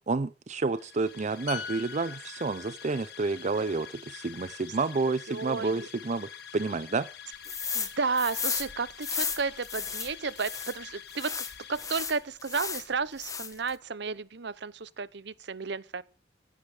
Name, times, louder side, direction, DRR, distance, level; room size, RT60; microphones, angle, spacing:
voice 1, 0.1-7.1, right 3 dB, 40° right, 0.5 m, -30 dB
sound 1, 0.6-12.5, left 9 dB, 60° left, 1.8 m, -47 dB
sound 2, 1.5-5.1 5.4-5.6, left 6 dB, 80° left, 1.0 m, -44 dB
voice 2, 5.3-5.7 7.7-11.3 11.7-16.0, right 4 dB, 65° right, 0.8 m, -32 dB
sound 3, 7.4-7.9 8.2-10.8 11.1-12.9 13.2-13.7, left 6 dB, 20° left, 1.3 m, -34 dB
15.5 x 9.8 x 5.0 m
head